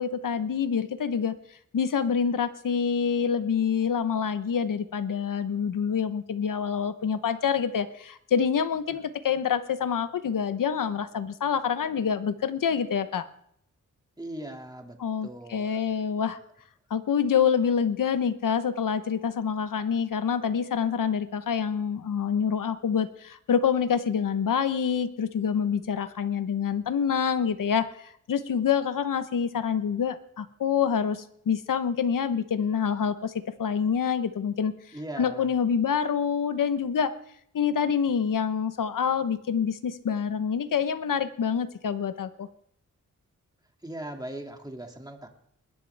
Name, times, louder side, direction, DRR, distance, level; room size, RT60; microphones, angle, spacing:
voice 1, 0.0-1.4 1.7-13.3 15.0-16.4 16.9-33.3 33.6-34.7 35.2-37.1 37.5-42.5, left 7 dB, 75° left, 11 dB, 1.0 m, -26 dB
voice 2, 14.2-15.8 34.9-35.5 43.8-45.3, right 1 dB, 10° right, 3 dB, 2.4 m, -39 dB
21.0 x 10.5 x 3.4 m, 0.70 s
cardioid pair, 60°, 32 cm